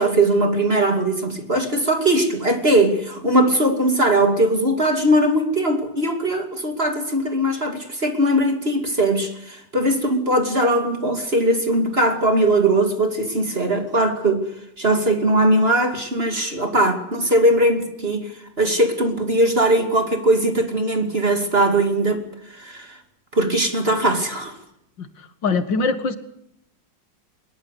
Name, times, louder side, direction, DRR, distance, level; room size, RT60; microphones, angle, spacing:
voice 1, 0.0-14.5 14.8-18.3 18.6-22.2 22.5-23.0 23.3-24.6, right 1 dB, 30° right, 6 dB, 2.7 m, -20 dB
voice 2, 25.0-26.2, left 4 dB, 80° left, 10 dB, 2.5 m, -23 dB
22.5 x 21.0 x 8.3 m, 0.75 s
omnidirectional pair, 2.0 m